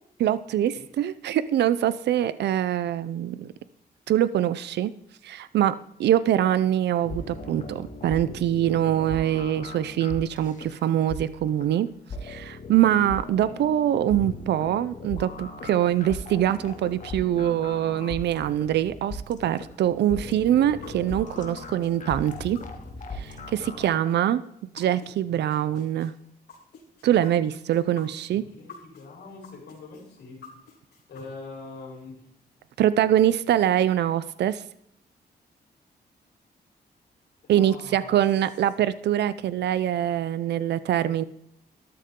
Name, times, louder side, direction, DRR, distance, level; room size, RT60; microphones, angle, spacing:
voice 1, 0.2-3.5 4.1-4.9 5.2-11.9 12.2-22.6 23.1-24.4 24.7-26.1 27.0-28.4 32.8-34.6 37.5-41.2, right 11 dB, 85° right, 16 dB, 0.5 m, -24 dB
sound 1, 7.0-23.9, left 2 dB, 45° left, 2.1 m, -39 dB
sound 2, 20.8-25.1 25.5-29.1 29.4-31.2, left 5 dB, 70° left, 4.5 m, -48 dB
voice 2, 23.8-24.1 28.3-30.7 31.1-32.3 37.4-38.2, left 3 dB, 85° left, -1 dB, 4.6 m, -43 dB
13.5 x 12.0 x 3.7 m, 0.72 s
cardioid pair, 115°, 17 cm